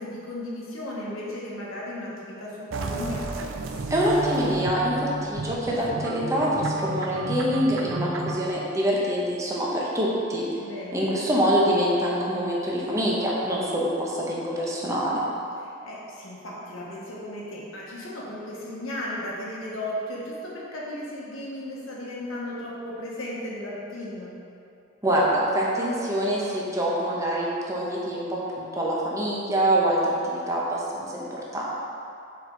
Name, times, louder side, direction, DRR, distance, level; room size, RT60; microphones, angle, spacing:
voice 1, 0.0-3.3 10.6-11.1 15.6-24.4, left 1 dB, 85° left, -5 dB, 1.4 m, -35 dB
sound 1, 2.7-8.5, right 3 dB, 70° right, 0.5 m, -32 dB
voice 2, 3.9-10.4 10.9-15.2 25.0-31.7, equal, 15° right, -5 dB, 1.0 m, -25 dB
7.0 x 4.4 x 3.9 m, 2.7 s
head